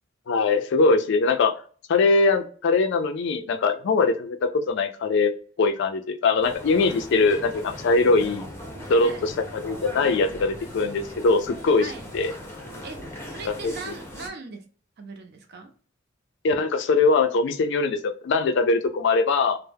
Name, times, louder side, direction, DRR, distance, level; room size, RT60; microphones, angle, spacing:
voice 1, 0.3-1.6 1.9-5.3 5.6-8.5 8.9-11.9 12.1-12.3 13.5-13.7 16.4-19.6, left 3 dB, 60° left, 8 dB, 0.4 m, -22 dB
sound 1, 6.4-14.3, left 1 dB, 15° left, 0.5 m, -39 dB
voice 2, 9.0-9.3 11.7-12.1 12.8-14.7 15.0-15.7, right 4 dB, 55° right, 5 dB, 0.5 m, -39 dB
2.2 x 2.0 x 3.2 m, 0.43 s
head